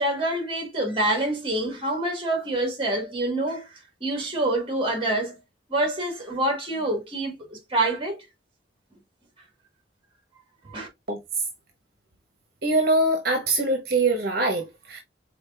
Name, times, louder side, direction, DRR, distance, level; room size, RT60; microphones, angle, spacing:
voice 1, 0.0-3.7 4.0-5.3 5.7-8.2 10.7-10.9, right 1 dB, 30° right, 1.8 m, -26 dB
voice 2, 12.6-15.0, right 2 dB, 55° right, 1.1 m, -23 dB
5.0 x 4.1 x 2.4 m
head